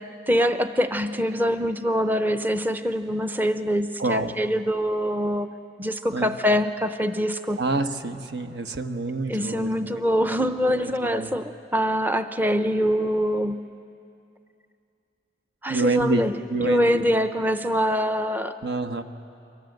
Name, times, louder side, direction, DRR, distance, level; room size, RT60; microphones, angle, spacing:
voice 1, 0.0-5.5 5.8-7.6 9.3-13.7 15.6-16.3 16.6-18.6, equal, 10° right, 9 dB, 0.6 m, -24 dB
voice 2, 4.0-4.4 6.1-6.3 7.6-10.0 10.3-10.4 10.7-11.3 15.7-16.2 16.5-17.0 18.6-19.0, right 3 dB, 75° right, 7 dB, 1.2 m, -27 dB
29.0 x 23.5 x 8.0 m, 2.6 s
head